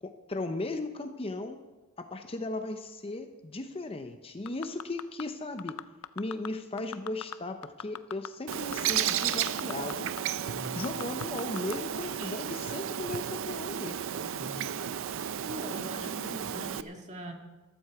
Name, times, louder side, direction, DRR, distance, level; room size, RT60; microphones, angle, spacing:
voice 1, 0.0-1.6 2.0-5.8 6.2-10.1 10.7-14.0, left 2 dB, 25° left, 7 dB, 0.6 m, -36 dB
sound 1, 4.5-5.2 5.6-6.5 6.8-7.4 7.6-9.9 10.2-10.3 10.6-11.8 12.2-12.3, left 10 dB, 85° left, 0.5 m, -39 dB
Bird, 8.5-16.8, right 9 dB, 60° right, 0.5 m, -33 dB
voice 2, 10.4-10.9 14.2-14.8 15.4-17.3, equal, 30° right, 2 dB, 1.9 m, -42 dB
14.5 x 13.0 x 4.7 m, 1.2 s
head